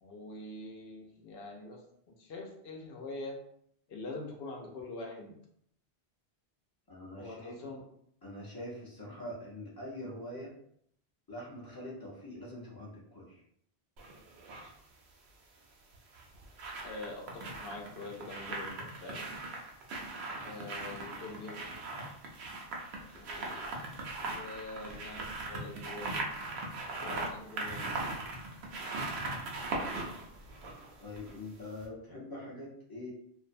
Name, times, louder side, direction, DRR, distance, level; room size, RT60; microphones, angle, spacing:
voice 1, 0.0-3.4 3.9-5.4 7.2-7.8 16.8-19.3 20.4-21.6 23.1-23.7 24.2-26.3 27.0-27.9, left 2 dB, 70° left, 0 dB, 0.8 m, -44 dB
voice 2, 6.9-7.6 8.2-10.5 11.3-13.4 31.0-33.1, left 1 dB, 25° left, -5 dB, 0.6 m, -44 dB
sound 1, 14.0-14.7 15.9-31.5 31.8-31.9, right 2 dB, 80° right, 0.9 m, -39 dB
2.5 x 2.0 x 2.5 m, 0.69 s
omnidirectional pair, 1.1 m